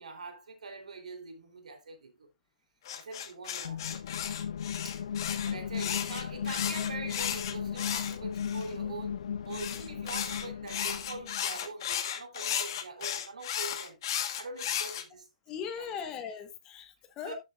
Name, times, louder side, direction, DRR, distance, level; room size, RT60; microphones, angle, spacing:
voice 1, 0.0-2.3 2.9-3.9 4.8-5.0 5.4-15.3 15.6-15.9 17.2-17.4, right 3 dB, 80° right, 3.3 m, -44 dB
sound 1, 2.9-8.7 9.5-15.0, left 9 dB, 35° left, 1.3 m, -35 dB
sound 2, 3.6-11.4, left 7 dB, 60° left, 0.5 m, -36 dB
voice 2, 15.5-17.3, left 7 dB, 15° left, 1.0 m, -39 dB
12.5 x 6.5 x 2.4 m
hypercardioid pair, 170°, 4 cm